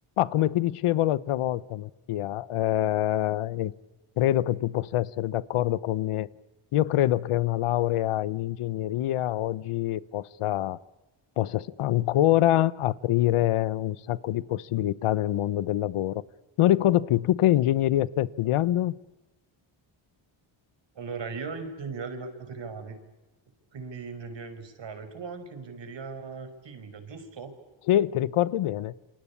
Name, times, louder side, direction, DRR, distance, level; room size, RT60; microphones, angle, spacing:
voice 1, 0.2-3.7 4.2-6.3 6.7-10.8 11.4-16.2 16.6-18.9 27.9-28.9, left 13 dB, 80° left, 18 dB, 1.0 m, -25 dB
voice 2, 21.0-23.0 23.7-27.6, right 4 dB, 60° right, 9 dB, 5.3 m, -38 dB
28.0 x 23.5 x 8.5 m, 1.1 s
cardioid pair, 85°, 50 cm